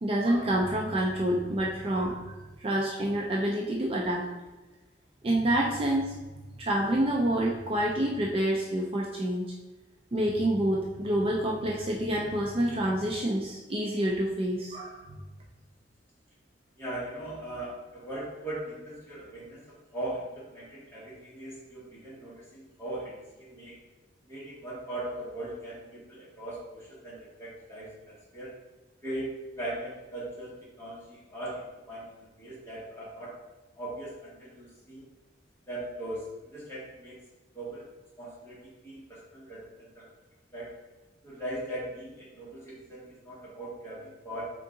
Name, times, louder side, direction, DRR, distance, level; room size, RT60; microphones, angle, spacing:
voice 1, 0.0-4.2 5.2-6.1 6.6-9.5 10.1-15.0, right 1 dB, 30° right, -2 dB, 0.4 m, -27 dB
voice 2, 16.8-19.6 19.9-23.8 24.2-28.5 29.0-29.3 29.6-33.3 33.7-35.1 35.7-37.2 37.5-37.9 38.2-40.0 40.5-40.7 41.2-44.5, right 1 dB, 15° left, -8 dB, 1.4 m, -39 dB
3.7 x 3.7 x 3.7 m, 1.1 s
head